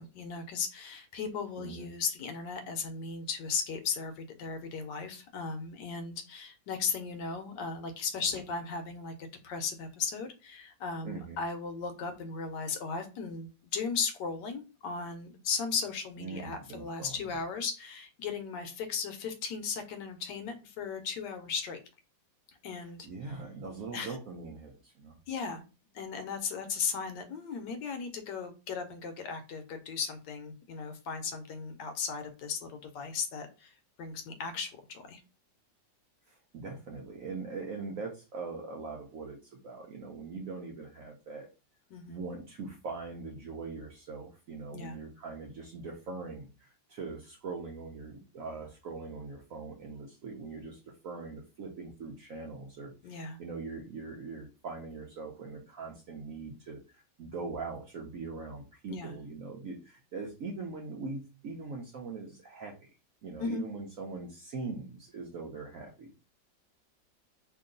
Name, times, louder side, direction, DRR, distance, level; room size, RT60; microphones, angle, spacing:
voice 1, 0.0-21.8 22.6-23.1 23.9-24.2 25.3-25.6 25.9-35.2 41.9-42.2 44.7-45.0 53.0-53.4 58.9-59.2 63.4-63.6, left 5 dB, 75° left, 7 dB, 1.2 m, -36 dB
voice 2, 11.0-11.4 16.2-17.2 22.8-25.2 36.3-41.5 42.1-62.9 63.2-66.2, right 4 dB, 70° right, 1 dB, 0.8 m, -42 dB
3.0 x 2.6 x 3.7 m, 0.31 s
omnidirectional pair, 2.0 m